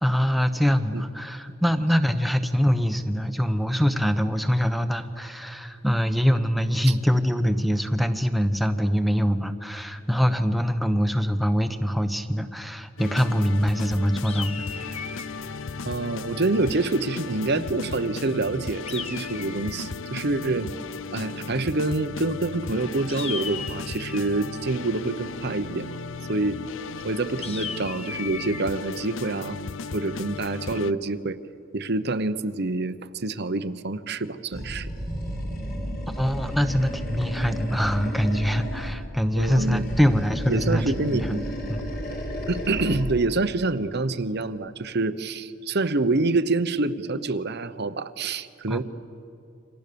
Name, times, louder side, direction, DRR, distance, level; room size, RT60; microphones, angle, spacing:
voice 1, 0.0-14.6 36.2-41.8 48.7-48.8, equal, ahead, 9 dB, 1.1 m, -24 dB
sound 1, 13.0-30.9, left 4 dB, 65° left, 0.6 m, -36 dB
sound 2, 14.2-15.4 18.9-19.9 23.1-24.4 27.4-28.6, left 6 dB, 30° left, 0.9 m, -36 dB
voice 2, 15.8-20.7 21.1-25.9 26.3-26.6 27.0-29.6 29.9-31.4 31.7-34.9 39.4-39.9 40.5-41.5 42.5-48.8, right 2 dB, 50° right, 12 dB, 0.9 m, -26 dB
Animal, 34.5-39.0 39.3-43.3, equal, 50° left, 3.9 m, -32 dB
29.5 x 26.0 x 6.9 m, 2.6 s
head